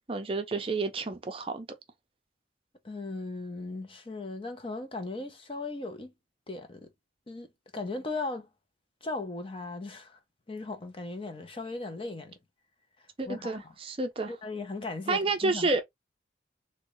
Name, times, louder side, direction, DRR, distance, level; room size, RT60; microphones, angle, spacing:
voice 1, 0.1-1.7 13.2-14.3 15.1-15.8, right 3 dB, 30° right, 0.5 m, -30 dB
voice 2, 2.8-6.1 6.5-6.9 7.3-7.5 7.7-8.5 9.0-10.2 10.5-12.3 13.3-13.7 14.3-15.7, left 3 dB, 30° left, 0.6 m, -37 dB
3.6 x 2.2 x 3.0 m
head